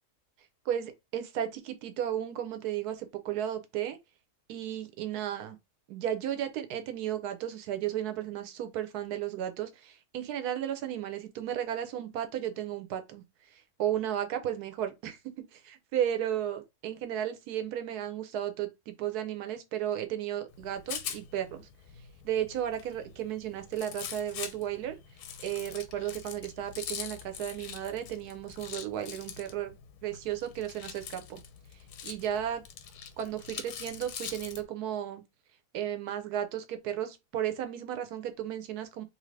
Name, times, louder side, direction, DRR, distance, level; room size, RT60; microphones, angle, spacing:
voice 1, 0.7-4.0 4.5-5.6 5.9-15.2 15.5-21.7 22.2-24.9 25.4-29.7 30.0-31.4 32.0-32.6 33.2-35.2 35.7-39.0, right 10 dB, 75° right, 1.2 m, -34 dB
Rattle, 20.5-34.6, left 8 dB, 90° left, 1.2 m, -44 dB
2.8 x 2.7 x 3.1 m
omnidirectional pair, 1.7 m